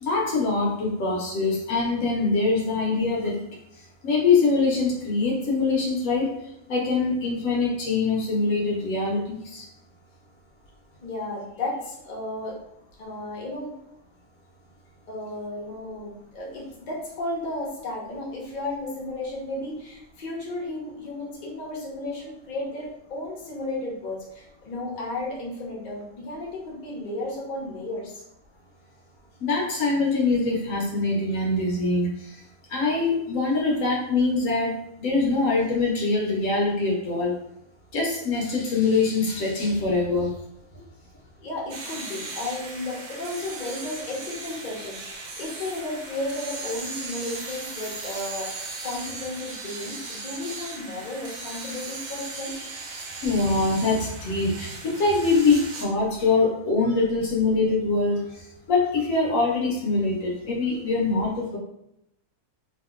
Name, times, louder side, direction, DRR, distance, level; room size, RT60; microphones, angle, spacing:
voice 1, 0.0-3.4 4.0-6.3 6.7-9.6 29.4-32.4 32.7-37.4 37.9-40.3 48.0-48.2 53.2-58.4 58.7-61.6, left 3 dB, 70° left, -2 dB, 1.0 m, -23 dB
voice 2, 11.0-12.6 13.0-13.7 15.1-28.2 41.4-45.0 45.4-48.5 48.8-52.5, left 2 dB, 45° left, -4 dB, 0.7 m, -33 dB
sound 1, 41.7-55.8, right 3 dB, 85° right, 1.1 m, -37 dB
2.8 x 2.4 x 2.4 m, 0.80 s
omnidirectional pair, 1.5 m